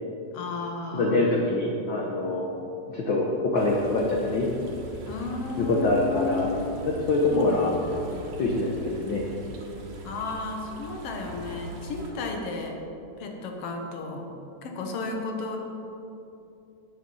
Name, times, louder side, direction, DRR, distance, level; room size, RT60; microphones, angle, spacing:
voice 1, 0.3-1.4 5.0-6.5 7.3-7.8 10.0-12.8 13.2-14.3 14.6-15.6, left 3 dB, 65° left, 2 dB, 1.7 m, -33 dB
voice 2, 0.9-2.5 2.9-4.5 5.6-6.5 6.9-9.3, left 2 dB, 90° left, -1 dB, 1.0 m, -25 dB
sound 1, 3.6-12.1, right 1 dB, 80° right, 2.8 m, -41 dB
9.8 x 7.7 x 5.5 m, 2.7 s
omnidirectional pair, 3.5 m